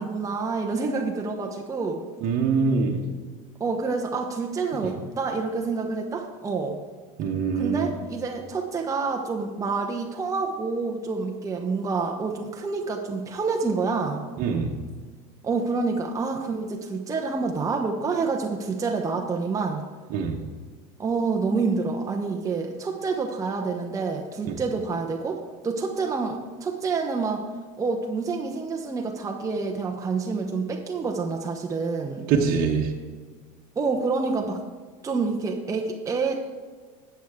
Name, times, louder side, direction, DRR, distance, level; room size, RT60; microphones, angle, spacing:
voice 1, 0.0-2.0 3.6-6.8 7.5-14.2 15.4-19.9 21.0-27.4 27.8-32.3 33.8-34.6 35.0-36.4, right 4 dB, 15° right, 2 dB, 0.9 m, -28 dB
voice 2, 2.2-3.0 7.2-7.9 14.4-14.7 20.1-20.4 24.4-24.6 32.3-32.9, right 5 dB, 50° right, 0 dB, 1.1 m, -24 dB
11.5 x 7.9 x 3.6 m, 1.5 s
supercardioid pair, 110°, 19 cm